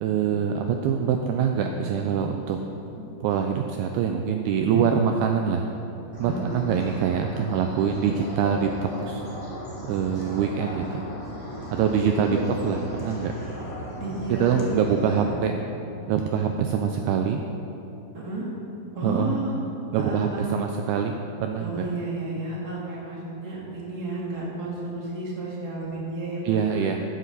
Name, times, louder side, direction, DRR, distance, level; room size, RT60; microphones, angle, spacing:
voice 1, 0.0-2.6 3.2-5.7 6.2-9.2 9.8-11.0 11.7-13.3 14.4-15.5 16.1-17.4 19.0-19.4 19.9-21.1 21.4-21.9 26.5-27.0, right 7 dB, 85° right, 4 dB, 2.3 m, -24 dB
sound 1, 6.1-15.2, equal, 15° left, 1.2 m, -37 dB
voice 2, 6.2-6.6 12.0-12.4 14.0-14.6 14.9-15.4 18.1-18.4 18.9-19.5 19.9-20.5 21.6-26.8, right 2 dB, 25° right, -6 dB, 2.8 m, -32 dB
15.0 x 13.5 x 4.1 m, 3.0 s
omnidirectional pair, 5.1 m